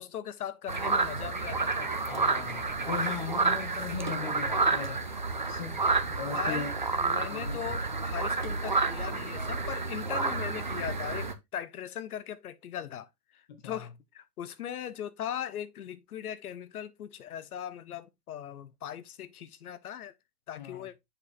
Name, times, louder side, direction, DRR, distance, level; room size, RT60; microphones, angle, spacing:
voice 1, 0.0-1.9 6.3-20.1 20.5-20.9, left 10 dB, 70° left, 1.0 m, -39 dB
sound 1, 0.7-11.3, right 4 dB, 35° right, 0.4 m, -30 dB
voice 2, 2.0-5.1 5.5-5.9 6.2-6.7 7.3-7.6 13.5-13.9 20.6-20.8, left 7 dB, 30° left, 1.2 m, -38 dB
7.0 x 4.8 x 3.5 m
hypercardioid pair, 180°, 46 cm